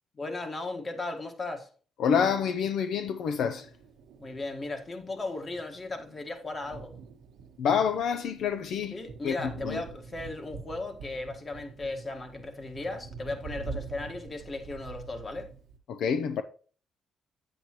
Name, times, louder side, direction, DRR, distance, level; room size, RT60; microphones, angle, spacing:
voice 1, 0.1-1.7 4.2-7.0 8.9-15.5, left 2 dB, 35° left, 1.5 m, -36 dB
voice 2, 2.0-3.7 7.6-9.0 9.2-9.8 15.9-16.4, left 7 dB, 75° left, 0.5 m, -27 dB
Thunder, 3.2-15.8, right 5 dB, 85° right, 1.0 m, -46 dB
8.6 x 8.1 x 3.0 m
cardioid pair, 90°, 0 cm